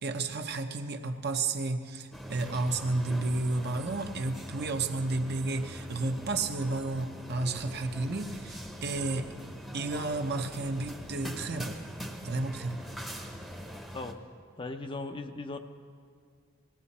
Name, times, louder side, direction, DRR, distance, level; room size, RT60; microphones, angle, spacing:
voice 1, 0.0-9.3 9.7-11.8 12.2-12.8, right 2 dB, 50° right, 5 dB, 0.8 m, -32 dB
sound 1, 2.1-14.1, equal, ahead, 0.9 m, -43 dB
voice 2, 14.6-15.6, left 3 dB, 25° left, 6 dB, 0.6 m, -38 dB
19.0 x 15.5 x 4.2 m, 2.2 s
head